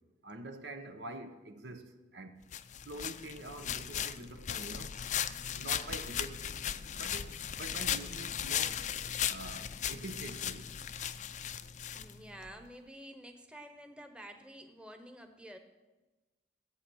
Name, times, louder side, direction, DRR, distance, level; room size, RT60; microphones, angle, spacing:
voice 1, 0.2-2.4 2.8-5.0 5.5-8.8 9.3-10.7, right 2 dB, 85° right, 1.1 m, -46 dB
sound 1, 2.5-12.5, left 9 dB, 45° left, 0.4 m, -37 dB
voice 2, 11.9-15.6, equal, 5° right, 0.9 m, -50 dB
14.5 x 8.4 x 6.3 m
head